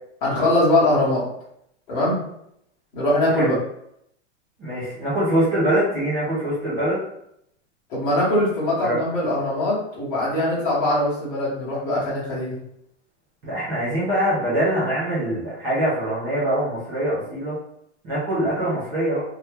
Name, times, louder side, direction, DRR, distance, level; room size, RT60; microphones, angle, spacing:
voice 1, 0.2-1.2 1.9-2.2 2.9-3.5 7.9-12.6, left 1 dB, 20° left, -9 dB, 1.1 m, -21 dB
voice 2, 4.6-7.0 8.8-9.0 13.4-17.6 18.0-19.2, right 1 dB, 10° right, -10 dB, 0.5 m, -23 dB
2.8 x 2.2 x 3.3 m, 0.74 s
supercardioid pair, 175°, 36 cm